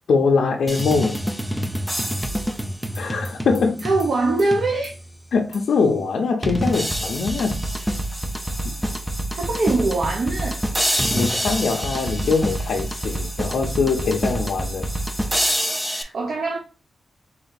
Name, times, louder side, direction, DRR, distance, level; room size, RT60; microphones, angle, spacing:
voice 1, 0.1-1.2 3.0-3.9 5.3-7.6 8.6-8.7 11.1-14.9, left 4 dB, 70° left, 0.5 m, -22 dB
sound 1, 0.7-5.1 5.5-5.6 6.4-16.0, equal, ahead, 0.4 m, -26 dB
voice 2, 3.8-4.9 9.3-10.6 15.9-16.6, right 3 dB, 55° right, 0.7 m, -22 dB
3.6 x 2.6 x 3.7 m
wide cardioid pair, 165°, 0 cm